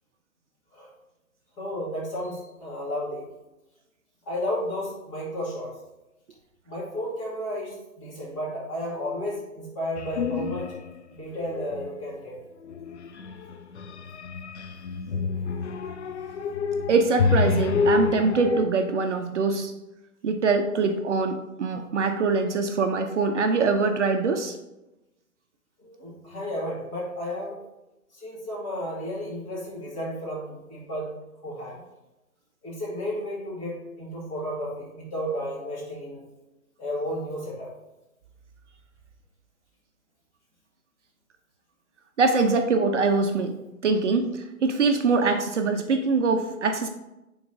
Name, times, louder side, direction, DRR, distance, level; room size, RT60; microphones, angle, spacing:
voice 1, 1.6-3.2 4.3-5.7 6.7-10.8 11.1-12.4 25.8-27.6 28.1-31.2 31.4-31.8 32.6-36.2 36.8-37.7, equal, 20° left, -6 dB, 2.0 m, -33 dB
sound 1, 10.0-11.0 11.3-11.9 12.6-18.6, left 5 dB, 55° left, 0.5 m, -28 dB
voice 2, 16.9-19.7 20.2-24.6 42.2-43.5 43.8-46.9, right 4 dB, 55° right, 5 dB, 0.6 m, -23 dB
9.4 x 4.0 x 2.6 m, 0.97 s
hypercardioid pair, 160°, 44 cm